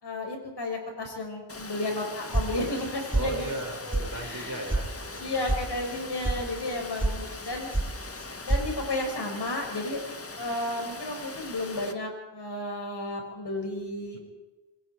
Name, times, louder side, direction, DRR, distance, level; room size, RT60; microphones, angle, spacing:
voice 1, 0.0-3.5 3.8-4.6 5.2-7.7 8.4-10.0 10.4-14.2, left 2 dB, 60° left, 2 dB, 6.4 m, -33 dB
Water, 1.5-11.9, left 3 dB, 30° left, 1.8 m, -41 dB
sound 1, 2.3-2.9 3.1-3.6 3.9-4.0 4.4-4.8 5.1-5.6 5.9-6.4 6.7-7.1 7.4-8.7, right 2 dB, 20° right, 2.7 m, -27 dB
voice 2, 3.1-5.4 14.1-14.2, right 1 dB, 40° right, 1 dB, 6.3 m, -37 dB
28.5 x 22.5 x 4.8 m, 1.1 s
wide cardioid pair, 125°, 46 cm